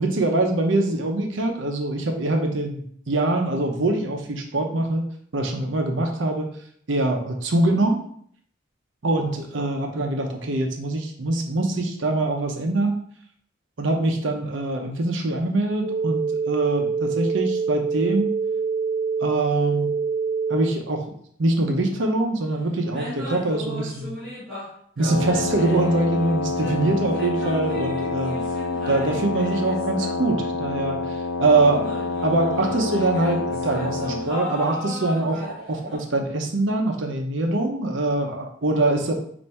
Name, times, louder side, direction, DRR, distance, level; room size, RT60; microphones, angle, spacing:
voice 1, 0.0-2.8 3.1-5.0 5.3-6.5 6.9-8.0 9.0-12.9 13.8-18.3 19.2-19.9 20.5-21.1 21.4-24.2 25.0-28.3 28.9-31.9 32.2-39.1, right 2 dB, 75° right, 3 dB, 0.7 m, -23 dB
sound 1, 15.8-20.7, right 5 dB, 25° right, 0.5 m, -25 dB
sound 2, 22.3-22.4 22.8-24.7 25.0-30.9 31.5-36.0, left 1 dB, ahead, 1.5 m, -36 dB
Wind instrument woodwind instrument, 25.0-34.4, left 3 dB, 70° left, 0.4 m, -27 dB
3.4 x 2.6 x 4.1 m, 0.62 s
head